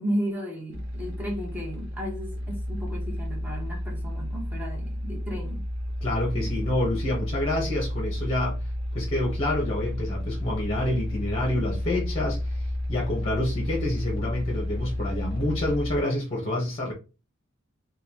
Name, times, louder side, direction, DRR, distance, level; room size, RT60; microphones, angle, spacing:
voice 1, 0.0-5.6 6.3-6.5, equal, 10° right, 1.1 m, -34 dB
sound 1, 0.7-16.0, left 1 dB, 65° right, 0.9 m, -31 dB
voice 2, 6.0-8.7 8.9-16.9, left 1 dB, 30° left, 0.9 m, -28 dB
3.9 x 2.3 x 2.8 m
head